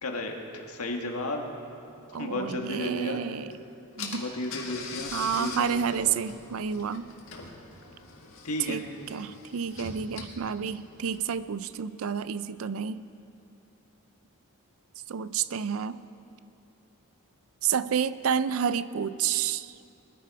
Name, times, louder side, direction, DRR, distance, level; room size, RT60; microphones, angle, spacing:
voice 1, 0.0-1.4 2.2-3.2 4.1-6.2 8.4-8.8, left 1 dB, 85° left, 2 dB, 1.6 m, -34 dB
voice 2, 2.1-3.5 4.0-4.2 5.1-7.1 8.6-13.1 15.1-16.0 17.6-19.7, right 7 dB, 65° right, 15 dB, 0.4 m, -30 dB
Car / Engine, 3.5-3.6 4.0-11.4, left 4 dB, 65° left, 1.8 m, -43 dB
20.5 x 11.0 x 4.8 m, 2.7 s
head